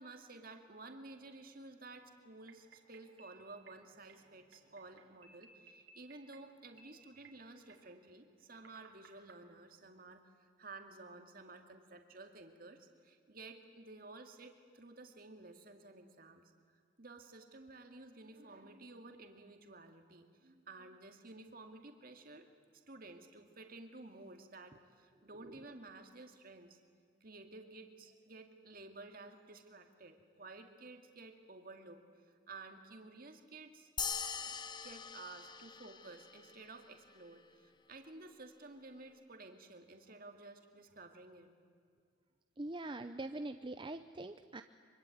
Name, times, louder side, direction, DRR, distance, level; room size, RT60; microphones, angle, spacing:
voice 1, 0.0-16.4 17.0-22.5 22.9-26.8 27.2-33.9 34.5-34.6 34.8-41.5, right 3 dB, 45° right, 5 dB, 2.3 m, -53 dB
sound 1, 1.2-9.3, right 4 dB, 75° right, 3.8 m, -64 dB
sound 2, 34.0-36.7, left 6 dB, 20° left, 1.1 m, -42 dB
voice 2, 42.6-44.6, right 2 dB, 25° right, 8 dB, 0.7 m, -43 dB
24.5 x 24.5 x 9.3 m, 2.1 s
head